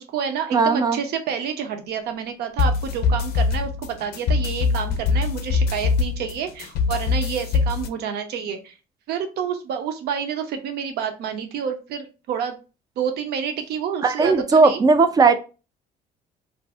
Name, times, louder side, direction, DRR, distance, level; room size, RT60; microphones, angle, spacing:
voice 1, 0.0-8.7 9.1-12.6 13.0-14.8, right 7 dB, 70° right, 6 dB, 0.6 m, -29 dB
voice 2, 0.5-1.0 14.0-15.3, right 4 dB, 20° right, 9 dB, 0.3 m, -17 dB
sound 1, 2.6-7.9, left 4 dB, 70° left, 0.4 m, -23 dB
2.6 x 2.0 x 3.3 m, 0.32 s
cardioid pair, 110°, 17 cm